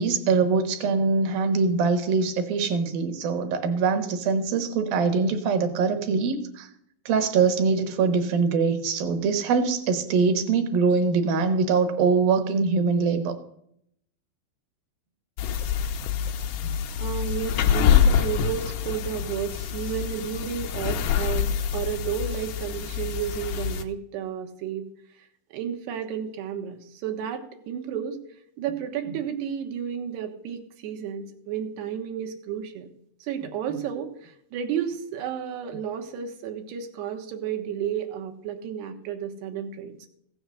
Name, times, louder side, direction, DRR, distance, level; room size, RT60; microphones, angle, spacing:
voice 1, 0.0-6.7 7.1-13.4 16.6-16.7, right 5 dB, 70° right, 7 dB, 2.9 m, -23 dB
sound 1, 15.4-23.8, left 8 dB, 80° left, 2.0 m, -26 dB
voice 2, 17.0-24.9 25.5-28.2 28.6-32.9 33.2-40.0, right 8 dB, 85° right, 5 dB, 3.4 m, -32 dB
15.5 x 7.1 x 6.3 m, 0.70 s
omnidirectional pair, 4.7 m